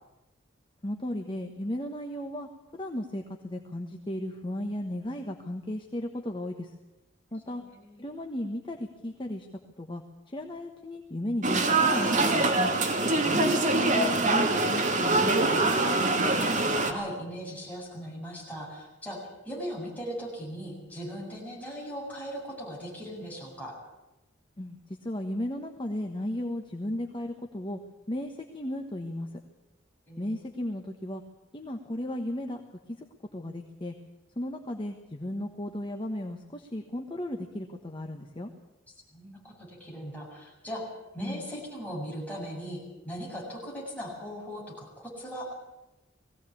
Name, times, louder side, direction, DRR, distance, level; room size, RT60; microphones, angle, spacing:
voice 1, 0.8-6.7 7.3-7.6 8.0-9.5 9.8-10.0 10.3-12.7 13.3-15.7 24.6-24.8 25.0-27.8 28.1-29.3 30.2-31.2 31.5-32.6 32.9-33.0 33.3-33.9 34.4-38.5 41.2-41.4, left 1 dB, 25° left, 4 dB, 1.3 m, -35 dB
voice 2, 7.4-8.0 16.5-23.8 30.1-30.5 39.1-40.9 41.1-45.5, equal, 10° left, -4 dB, 7.3 m, -39 dB
sound 1, 11.4-16.9, right 2 dB, 40° right, 2.3 m, -24 dB
20.0 x 16.5 x 8.6 m, 1.0 s
head